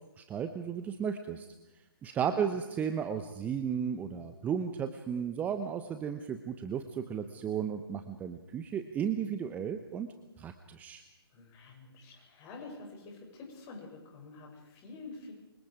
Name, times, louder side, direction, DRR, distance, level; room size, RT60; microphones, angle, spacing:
voice 1, 0.2-1.5 2.0-10.1 10.4-11.0, right 7 dB, 10° right, 8 dB, 1.0 m, -34 dB
voice 2, 2.1-2.5 11.3-15.3, left 3 dB, 25° left, 0 dB, 7.1 m, -48 dB
29.5 x 25.0 x 5.0 m, 1.1 s
figure-of-eight pair, 135°, 13 cm